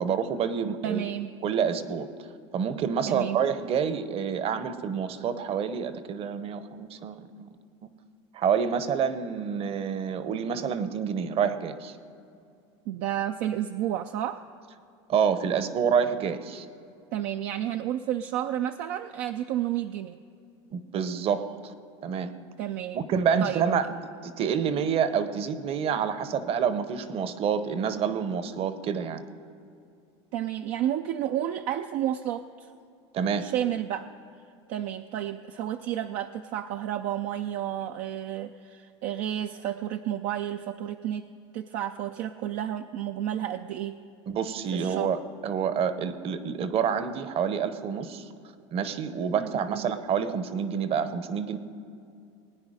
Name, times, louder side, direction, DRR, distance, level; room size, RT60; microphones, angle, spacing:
voice 1, 0.0-1.0 1.4-2.1 2.5-7.5 8.3-12.0 15.1-16.7 20.7-21.7 22.0-22.3 22.9-29.2 33.1-33.5 44.3-48.3 48.7-51.6, right 7 dB, 40° right, 12 dB, 0.9 m, -28 dB
voice 2, 0.8-1.3 3.1-3.4 12.9-14.4 17.1-20.2 22.6-23.1 23.4-23.6 30.3-32.7 33.4-34.1 34.7-41.3 41.5-44.0 44.7-45.1 49.4-49.9, right 11 dB, 60° right, 6 dB, 0.5 m, -31 dB
20.0 x 9.6 x 5.0 m, 2.5 s
supercardioid pair, 105°, 15 cm